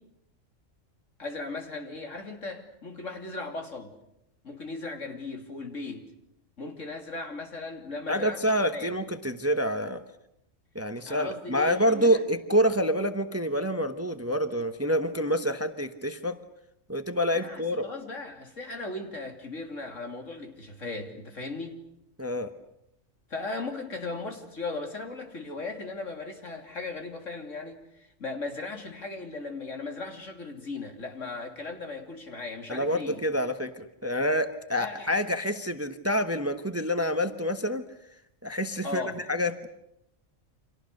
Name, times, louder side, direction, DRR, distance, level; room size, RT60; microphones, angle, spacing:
voice 1, 1.2-3.9 4.4-6.1 6.6-9.0 11.1-12.2 17.3-21.8 23.3-33.2 34.8-35.2 38.8-39.2, left 3 dB, 70° left, 4 dB, 3.4 m, -37 dB
voice 2, 8.1-10.0 10.7-16.4 16.9-17.9 22.2-22.5 32.7-37.8 38.4-39.7, equal, 10° right, 9 dB, 1.1 m, -27 dB
30.0 x 26.0 x 6.6 m, 0.81 s
omnidirectional pair, 1.4 m